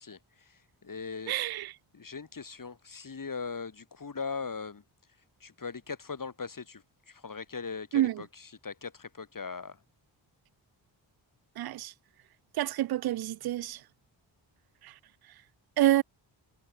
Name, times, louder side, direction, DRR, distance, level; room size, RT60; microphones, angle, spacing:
voice 1, 0.0-1.3 1.9-4.8 5.4-9.8, left 5 dB, 45° left, 2.6 m, -40 dB
voice 2, 1.3-1.7 7.9-8.1 11.6-11.9 12.6-13.8 14.8-14.9 15.8-16.0, right 14 dB, 55° right, 0.5 m, -27 dB
cardioid pair, 50°, 46 cm